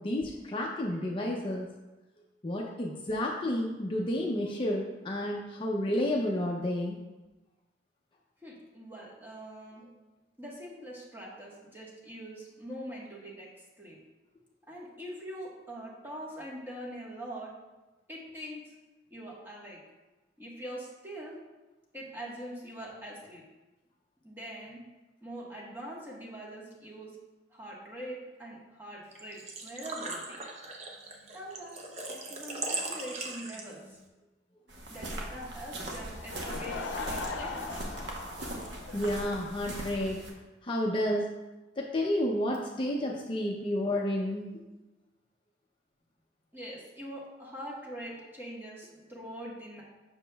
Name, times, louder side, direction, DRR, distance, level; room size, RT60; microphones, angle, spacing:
voice 1, 0.0-1.7 2.4-7.0 38.9-40.2 40.6-41.3 41.8-44.5, left 1 dB, 30° left, -1 dB, 0.5 m, -31 dB
voice 2, 8.4-9.9 10.4-14.0 14.7-17.5 18.1-18.7 19.1-19.8 20.4-21.4 21.9-23.4 24.2-24.8 25.2-27.2 27.5-30.4 31.3-34.0 34.9-37.8 46.5-49.8, right 1 dB, 10° right, -5 dB, 1.3 m, -43 dB
Engine / Trickle dribble / Fill (with liquid), 29.1-34.0, right 2 dB, 40° right, 0.7 m, -39 dB
sound 1, 34.7-40.3, right 1 dB, 65° right, 0.9 m, -40 dB
Laughter / Crowd, 36.1-39.6, left 3 dB, 90° left, 0.6 m, -39 dB
7.1 x 6.2 x 2.2 m, 1.1 s
head